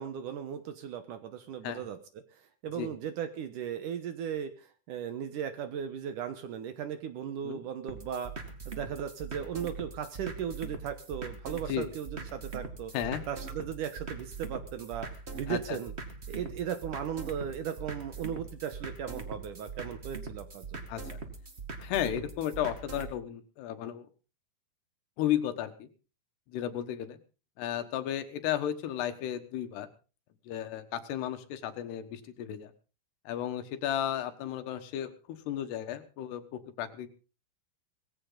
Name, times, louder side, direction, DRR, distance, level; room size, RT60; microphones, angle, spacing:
voice 1, 0.0-2.0 2.3-12.9 13.3-15.9 16.3-20.8, right 8 dB, 70° right, 9 dB, 2.2 m, -37 dB
sound 1, 7.9-23.1, right 4 dB, 45° right, 0.8 m, -42 dB
voice 2, 15.5-15.8 20.9-21.2 21.8-24.1 25.2-25.9 26.5-27.2 27.6-29.9 30.5-32.7 33.3-35.1 35.5-37.1, left 11 dB, 85° left, 9 dB, 3.5 m, -34 dB
19.0 x 15.5 x 3.9 m, 0.36 s
omnidirectional pair, 4.6 m